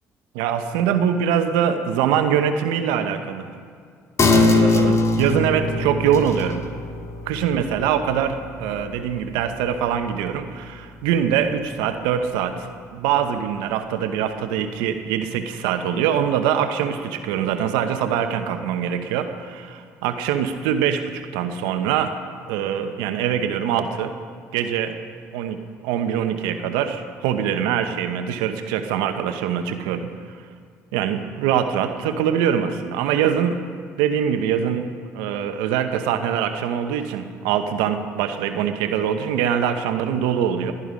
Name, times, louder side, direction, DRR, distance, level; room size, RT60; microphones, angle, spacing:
voice 1, 0.3-3.5 4.3-6.6 7.3-22.1 22.5-24.1 24.5-24.9 25.3-30.1 30.9-33.6 34.0-34.9 35.1-40.7, right 8 dB, 85° right, 8 dB, 1.0 m, -23 dB
sound 1, 4.2-11.2 11.6-11.7, left 3 dB, 45° left, 1.9 m, -23 dB
19.0 x 11.5 x 5.2 m, 2.2 s
supercardioid pair, 60°, 7 cm